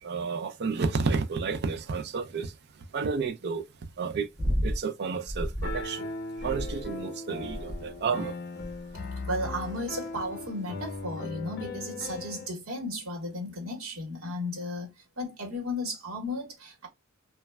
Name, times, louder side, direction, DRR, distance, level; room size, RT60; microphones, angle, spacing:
voice 1, 0.0-2.5 2.9-3.7 4.0-4.3 4.6-6.1 6.4-8.3, right 4 dB, 55° right, 0.5 m, -31 dB
sound 1, 4.4-4.8 5.2-5.8 6.4-7.0 7.5-8.0 8.6-8.9 9.6-10.0 10.9-11.0, equal, 20° right, 1.4 m, -32 dB
Piano, 5.6-12.5, left 2 dB, 50° left, 0.6 m, -38 dB
voice 2, 8.9-16.9, left 1 dB, 80° right, 1.1 m, -35 dB
3.1 x 2.3 x 2.2 m
head